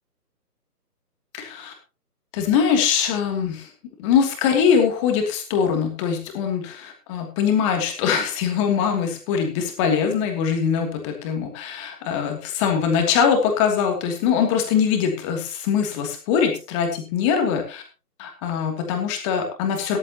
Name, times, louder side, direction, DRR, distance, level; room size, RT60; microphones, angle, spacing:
voice 1, 1.3-1.7 2.3-3.7 4.0-17.8 18.2-20.0, left 7 dB, 20° left, 3 dB, 2.8 m, -22 dB
15.0 x 14.5 x 3.0 m, 0.33 s
figure-of-eight pair, 150°, 49 cm